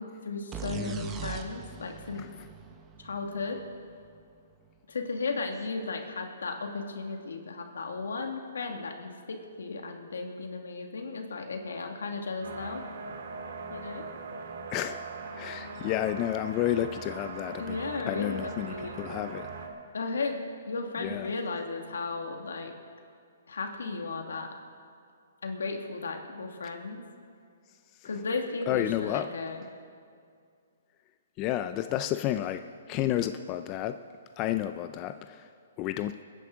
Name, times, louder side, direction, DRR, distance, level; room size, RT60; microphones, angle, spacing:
voice 1, 0.0-2.2 3.0-3.6 4.9-12.8 13.7-14.1 17.6-19.1 19.9-22.7 23.5-24.5 25.4-27.0 28.0-29.6, left 3 dB, 85° left, 3 dB, 2.1 m, -35 dB
sound 1, 0.5-4.2, right 6 dB, 20° right, 0.9 m, -40 dB
sound 2, 12.4-19.7, right 3 dB, 65° right, 2.3 m, -40 dB
voice 2, 14.7-15.0 15.3-17.8 18.1-19.5 21.0-21.3 28.7-29.3 31.4-32.6 32.9-34.0 34.4-35.5 35.8-36.1, left 12 dB, 30° left, 9 dB, 0.5 m, -31 dB
27.5 x 10.0 x 3.8 m, 2.3 s
hypercardioid pair, 145°, 0 cm